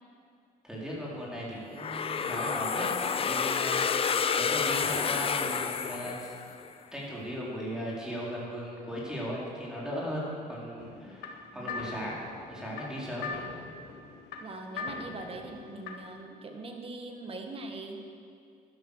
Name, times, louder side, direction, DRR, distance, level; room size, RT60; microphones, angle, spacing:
voice 1, 0.6-2.9 3.2-6.3 6.9-12.2 12.5-13.3, equal, 5° right, -6 dB, 3.9 m, -37 dB
sound 1, 1.8-6.7, left 6 dB, 35° left, 0.7 m, -29 dB
sound 2, 10.8-16.2, left 4 dB, 80° left, 1.4 m, -42 dB
voice 2, 11.5-12.1 14.4-18.0, right 2 dB, 35° right, 3 dB, 1.9 m, -42 dB
12.0 x 10.5 x 6.5 m, 2.4 s
cardioid pair, 110°, 17 cm